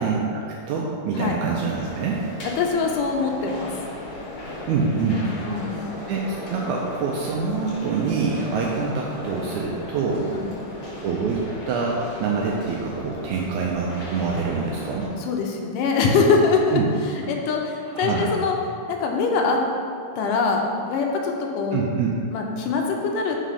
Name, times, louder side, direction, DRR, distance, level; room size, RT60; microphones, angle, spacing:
voice 1, 0.0-2.2 4.7-5.2 6.1-10.3 11.0-15.1 16.7-16.9 17.9-18.3 21.7-22.2, right 5 dB, 80° right, -2 dB, 1.7 m, -25 dB
sound 1, 1.7-15.0, left 1 dB, 60° left, 1.5 m, -36 dB
voice 2, 2.4-3.7 5.3-5.9 8.4-8.6 10.3-10.5 15.2-18.6 18.9-19.6 20.2-21.8 22.3-23.4, left 4 dB, 85° left, 1 dB, 2.2 m, -23 dB
5.4 x 3.8 x 5.0 m, 2.3 s
omnidirectional pair, 3.8 m